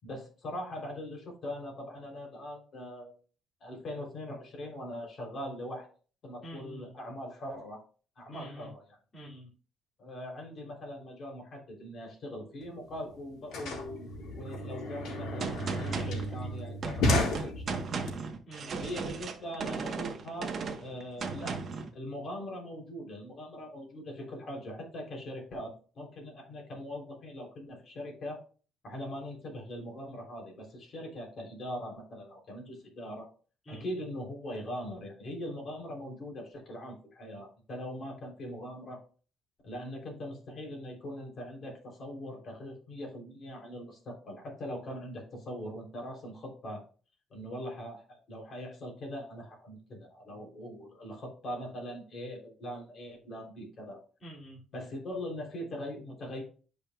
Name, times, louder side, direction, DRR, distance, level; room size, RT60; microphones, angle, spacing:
voice 1, 0.0-3.1 3.6-5.9 6.2-7.8 8.1-9.0 10.0-14.1 14.4-17.9 18.8-20.5 20.8-28.4 28.8-33.3 33.7-39.0 39.6-46.8 47.3-54.0 54.7-56.4, equal, 45° left, 0 dB, 3.4 m, -41 dB
voice 2, 6.4-6.9 8.3-8.7 9.1-9.5 18.5-18.9 33.6-33.8 54.2-54.6, right 1 dB, 30° left, -7 dB, 2.6 m, -47 dB
sound 1, 12.6-12.7 12.9-18.1, left 1 dB, 85° left, 2.8 m, -33 dB
Gunshot gunfire, 15.4-21.9, right 5 dB, 45° right, 1.1 m, -36 dB
12.5 x 5.3 x 2.3 m, 0.39 s
cardioid pair, 145°, 0 cm